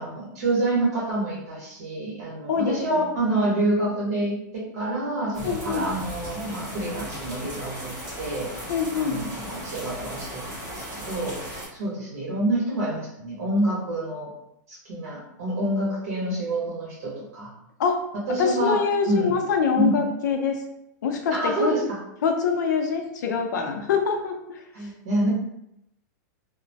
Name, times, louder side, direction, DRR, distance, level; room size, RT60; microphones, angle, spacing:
voice 1, 0.0-8.7 8.9-14.3 14.7-17.5 18.3-18.8 19.1-19.4 19.8-19.9 21.3-22.0 24.7-25.3, right 1 dB, 55° right, -5 dB, 1.3 m, -27 dB
voice 2, 2.5-3.0 5.4-5.9 8.7-9.2 17.8-18.0 18.4-20.6 21.0-21.7 22.2-24.6, left 6 dB, 70° left, 4 dB, 0.5 m, -24 dB
sound 1, 5.3-11.7, equal, 30° right, 1.2 m, -37 dB
3.0 x 2.1 x 2.7 m, 0.81 s
supercardioid pair, 180°, 10 cm